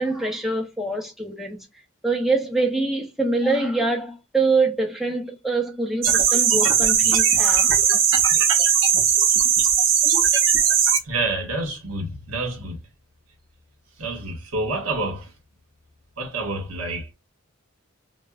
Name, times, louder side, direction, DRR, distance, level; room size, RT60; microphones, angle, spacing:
voice 1, 0.0-1.6 2.0-7.8, right 3 dB, ahead, 0.7 m, -24 dB
sound 1, 6.0-11.0, right 7 dB, 60° right, 0.8 m, -18 dB
voice 2, 11.0-12.8 14.0-15.3 16.2-17.1, right 2 dB, 80° right, 1.3 m, -28 dB
5.1 x 2.3 x 2.3 m
head